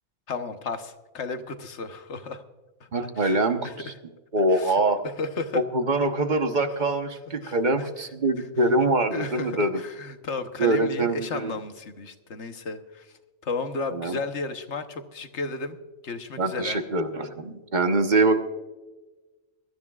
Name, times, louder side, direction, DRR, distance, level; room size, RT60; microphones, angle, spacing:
voice 1, 0.3-2.4 3.2-3.9 4.5-4.7 5.2-5.6 7.4-7.9 9.1-13.1 13.4-15.8 16.0-16.8, left 4 dB, 65° left, 8 dB, 1.3 m, -33 dB
voice 2, 2.9-3.9 4.3-5.0 5.7-9.8 10.6-11.5 13.9-14.2 16.4-18.4, right 2 dB, 40° right, 7 dB, 1.1 m, -24 dB
23.5 x 13.0 x 2.4 m, 1.2 s
omnidirectional pair, 1.3 m